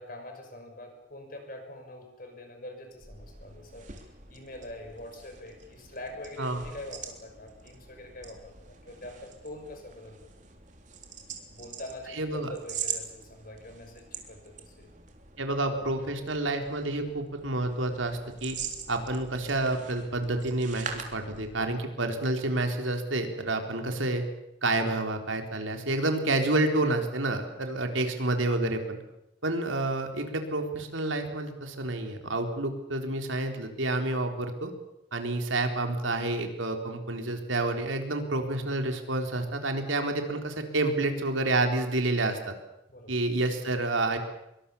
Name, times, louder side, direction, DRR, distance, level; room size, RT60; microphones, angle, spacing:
voice 1, 0.0-10.3 11.5-14.9 42.9-43.2, left 1 dB, 45° left, 4 dB, 6.1 m, -44 dB
sound 1, 2.9-21.8, right 7 dB, 40° right, 3.5 m, -43 dB
voice 2, 12.2-12.5 15.4-18.6 18.9-24.2 24.6-29.0 29.4-34.7 35.1-42.5 43.1-44.2, right 2 dB, 80° right, 5 dB, 3.8 m, -29 dB
25.5 x 23.5 x 7.1 m, 0.85 s
head